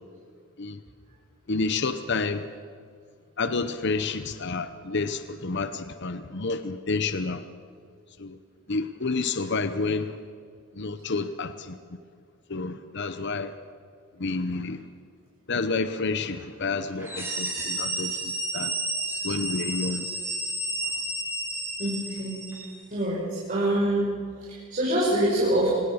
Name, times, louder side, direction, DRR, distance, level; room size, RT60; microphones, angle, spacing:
voice 1, 1.5-2.5 3.4-7.4 8.2-8.4 8.7-10.2 10.7-11.8 12.5-13.6 14.2-14.8 15.5-18.8 19.2-20.1, left 3 dB, 55° left, 11 dB, 0.9 m, -29 dB
sound 1, 17.0-22.7, right 1 dB, 10° right, 7.7 m, -31 dB
voice 2, 21.8-22.4 22.9-24.1 24.4-25.7, right 1 dB, 40° right, -6 dB, 5.7 m, -25 dB
25.5 x 20.5 x 6.5 m, 2.1 s
head